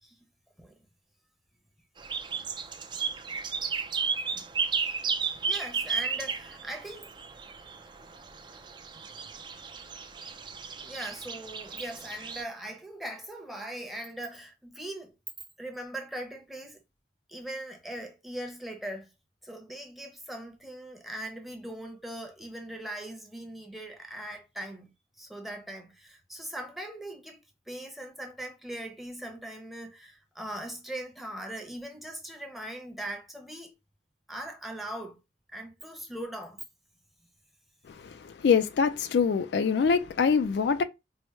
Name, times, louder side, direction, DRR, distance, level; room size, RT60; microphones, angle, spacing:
sound 1, 2.0-12.4, right 5 dB, 25° right, 0.4 m, -34 dB
voice 1, 5.4-7.1 10.8-15.1 15.6-16.8 17.3-19.1 19.4-24.9 25.2-27.4 27.7-33.7 34.3-35.2 35.5-36.6, right 1 dB, ahead, 0.7 m, -40 dB
voice 2, 37.9-40.8, left 6 dB, 70° left, 0.3 m, -25 dB
4.6 x 2.1 x 3.1 m
head